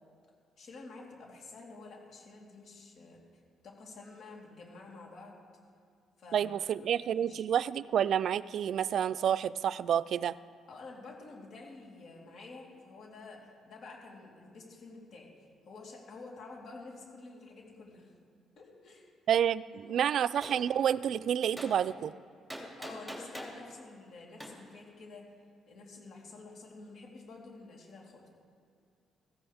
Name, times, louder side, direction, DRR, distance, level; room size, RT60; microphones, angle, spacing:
voice 1, 0.6-3.2 3.6-5.4 6.2-6.5 6.9-7.4 10.7-18.1 18.6-19.1 19.9-20.0 22.8-25.3 25.7-28.3, left 3 dB, 65° left, -2 dB, 3.5 m, -49 dB
voice 2, 6.3-10.4 19.3-22.1, right 9 dB, 65° right, 17 dB, 0.3 m, -29 dB
Gunshot gunfire, 20.4-20.6 21.6-21.7 22.5-23.6 24.4-24.5, equal, ahead, 2.7 m, -42 dB
15.5 x 15.5 x 3.5 m, 2.4 s
cardioid pair, 90°, 0 cm